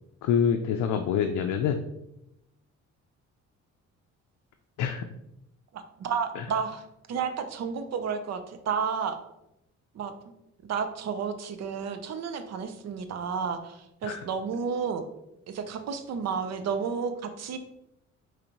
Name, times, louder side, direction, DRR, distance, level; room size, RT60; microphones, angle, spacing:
voice 1, 0.2-1.8 4.8-5.1 6.4-6.5 14.0-14.2, left 7 dB, 80° left, 5 dB, 0.5 m, -26 dB
voice 2, 5.7-6.8 7.1-9.2 9.9-10.1 10.7-15.0 15.5-17.6, right 6 dB, 60° right, 8 dB, 0.6 m, -31 dB
5.2 x 3.2 x 2.9 m, 0.83 s
cardioid pair, 90°, 30 cm